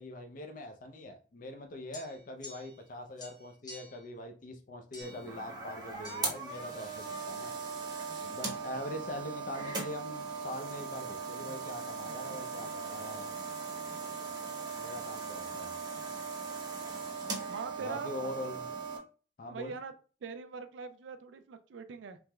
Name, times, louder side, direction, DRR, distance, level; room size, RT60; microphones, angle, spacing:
voice 1, 0.0-7.5 8.2-13.3 14.7-15.7 17.8-18.7 19.4-19.7, left 1 dB, 50° left, 0.5 m, -43 dB
sound 1, 1.9-2.9 3.2-4.1 4.9-5.3 6.0-6.2, left 1 dB, 25° left, 0.8 m, -49 dB
sound 2, 5.0-19.0, right 4 dB, 25° right, 0.7 m, -39 dB
voice 2, 17.5-18.3 19.4-19.9 20.2-22.2, right 5 dB, 90° right, 0.4 m, -42 dB
3.4 x 2.9 x 2.2 m
head